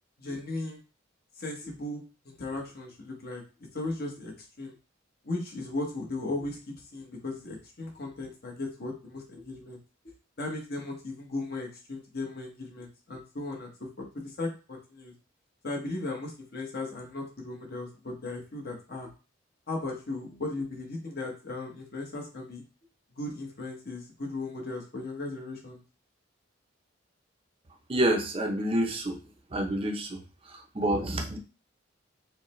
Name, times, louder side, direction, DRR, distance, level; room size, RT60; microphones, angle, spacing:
voice 1, 0.2-0.8 1.4-3.4 3.7-4.3 4.6-4.7 5.2-9.8 10.4-13.9 14.1-15.1 15.6-19.1 19.7-22.6 23.1-25.8, left 2 dB, 50° left, 0 dB, 1.0 m, -36 dB
voice 2, 27.9-29.2 29.5-30.2 30.5-31.4, right 1 dB, 30° right, 2 dB, 0.5 m, -28 dB
4.8 x 2.1 x 3.0 m, 0.33 s
head